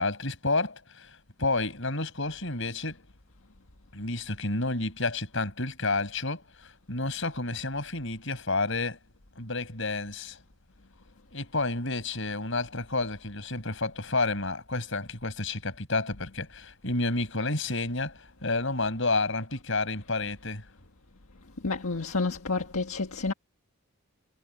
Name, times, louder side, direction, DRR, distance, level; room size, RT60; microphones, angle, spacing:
voice 1, 0.0-3.0 3.9-9.0 9.4-10.4 11.3-20.6, left 3 dB, 60° left, 6.5 m, -30 dB
voice 2, 21.6-23.3, left 3 dB, 85° left, 1.7 m, -29 dB
head